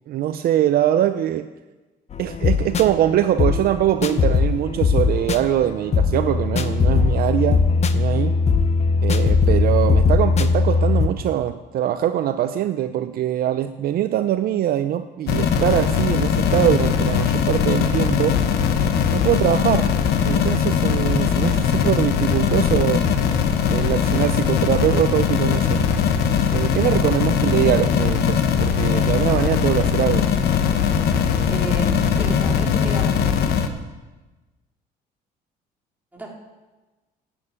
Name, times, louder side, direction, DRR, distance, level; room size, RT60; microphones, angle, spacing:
voice 1, 0.1-1.5 2.2-7.6 7.9-8.3 9.0-18.4 19.1-19.9 20.2-23.1 23.7-25.8 26.5-30.3, right 11 dB, 65° right, 10 dB, 0.6 m, -22 dB
sound 1, 2.1-11.1, left 4 dB, 40° left, 0.9 m, -19 dB
sound 2, 15.3-33.7, left 7 dB, 70° left, 1.2 m, -20 dB
voice 2, 31.4-33.3 36.1-36.3, right 2 dB, 10° right, -2 dB, 3.3 m, -31 dB
11.0 x 9.0 x 8.8 m, 1.2 s
cardioid pair, 110°, 17 cm